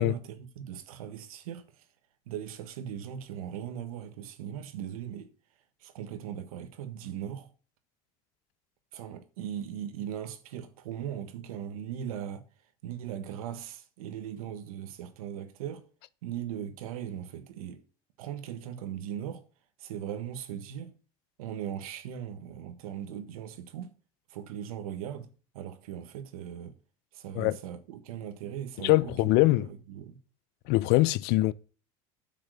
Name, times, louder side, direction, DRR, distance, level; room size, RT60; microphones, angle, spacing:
voice 1, 0.0-1.8 2.3-5.3 5.8-7.5 8.9-12.4 12.8-15.8 16.2-17.8 18.2-19.4 19.8-20.9 21.4-23.9 24.3-25.3 25.5-26.7 27.1-30.2, right 9 dB, 85° right, 1.6 m, -39 dB
voice 2, 28.8-29.7 30.7-31.5, left 19 dB, 65° left, 0.6 m, -23 dB
8.8 x 5.9 x 6.5 m
supercardioid pair, 85°, 18 cm